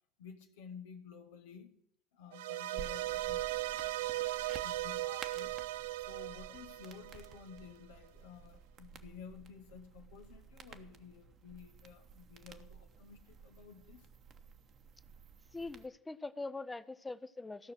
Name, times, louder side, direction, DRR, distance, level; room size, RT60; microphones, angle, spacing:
voice 1, 0.2-1.8 2.1-4.3 4.6-5.7 6.1-14.1, left 7 dB, 75° left, 4 dB, 1.0 m, -53 dB
sound 1, 2.3-7.6, right 16 dB, 75° right, 0.4 m, -38 dB
sound 2, 2.8-15.9, right 6 dB, 45° right, 1.1 m, -54 dB
voice 2, 15.5-17.7, left 3 dB, 15° left, 16 dB, 0.7 m, -42 dB
15.5 x 6.1 x 7.8 m, 0.79 s
hypercardioid pair, 70°, 0 cm